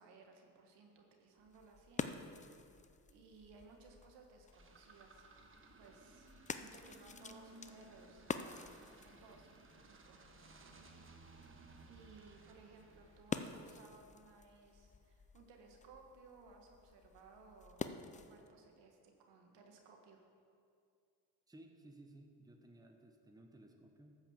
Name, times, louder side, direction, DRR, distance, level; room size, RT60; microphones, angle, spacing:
voice 1, 0.0-2.8 3.1-5.5 5.8-11.3 11.9-20.2, right 4 dB, 80° right, 2 dB, 1.8 m, -61 dB
sound 1, 1.4-18.5, left 4 dB, 20° left, 0.5 m, -49 dB
sound 2, 4.5-14.1, right 3 dB, 30° right, 1.3 m, -60 dB
voice 2, 21.5-24.2, right 1 dB, 10° right, 3 dB, 1.2 m, -59 dB
13.0 x 5.8 x 7.4 m, 2.4 s
cardioid pair, 85°, 42 cm